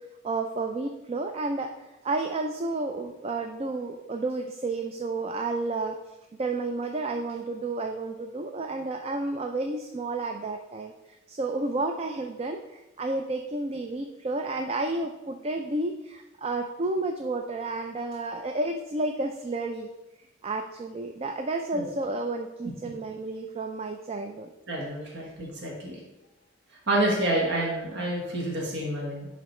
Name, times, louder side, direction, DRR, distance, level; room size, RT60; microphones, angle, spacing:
voice 1, 0.2-1.7 2.0-6.0 6.4-10.9 11.3-19.9 20.4-24.5, right 2 dB, 30° right, 5 dB, 0.3 m, -31 dB
voice 2, 24.7-26.0 26.9-29.3, right 1 dB, 60° right, -2 dB, 1.4 m, -28 dB
10.5 x 4.0 x 3.1 m, 1.0 s
head